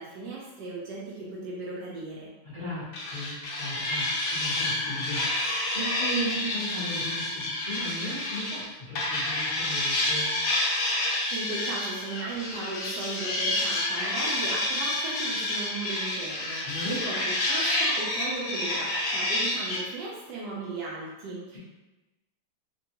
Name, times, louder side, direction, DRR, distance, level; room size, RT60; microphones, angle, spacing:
voice 1, 0.0-2.3 11.1-21.6, right 3 dB, 75° right, -5 dB, 1.0 m, -36 dB
voice 2, 2.4-10.4 16.6-17.0 21.5-21.6, equal, 50° left, -12 dB, 0.5 m, -36 dB
sound 1, 2.9-8.6 9.0-19.8, left 1 dB, 75° left, 0.9 m, -29 dB
3.5 x 2.2 x 2.8 m, 1.1 s
omnidirectional pair, 2.3 m